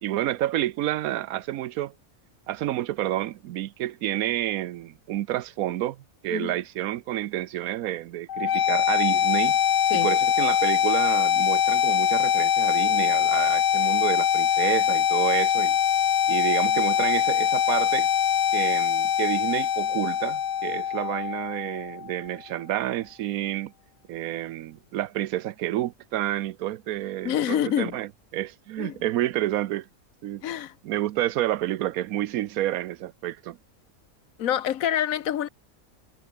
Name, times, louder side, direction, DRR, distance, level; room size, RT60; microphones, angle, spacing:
voice 1, 0.0-1.9 2.5-9.6 9.9-15.8 16.3-18.1 18.5-23.7 24.1-29.9 30.2-30.4 30.8-33.6, right 14 dB, 85° right, 1.1 m, -29 dB
sound 1, 8.3-22.3, left 9 dB, 55° left, 0.6 m, -23 dB
voice 2, 27.2-28.0 28.8-29.0 30.4-30.7 34.4-35.5, left 10 dB, 75° left, 1.2 m, -26 dB
omnidirectional pair, 1.5 m